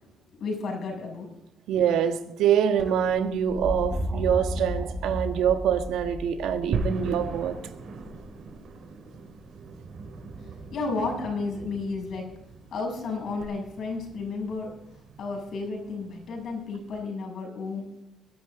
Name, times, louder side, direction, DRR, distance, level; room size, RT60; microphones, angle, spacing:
voice 1, 0.4-1.3 10.7-12.3 12.7-14.7 15.2-17.9, left 3 dB, 65° left, 6.6 m, -32 dB
voice 2, 1.7-7.5, right 8 dB, 85° right, 1.6 m, -25 dB
sound 1, 2.8-8.7 10.3-10.8 13.4-13.5, equal, 40° right, 6.5 m, -34 dB
sound 2, 6.7-17.0, right 3 dB, 65° right, 3.3 m, -39 dB
21.0 x 11.0 x 3.9 m
cardioid pair, 90°, 0 cm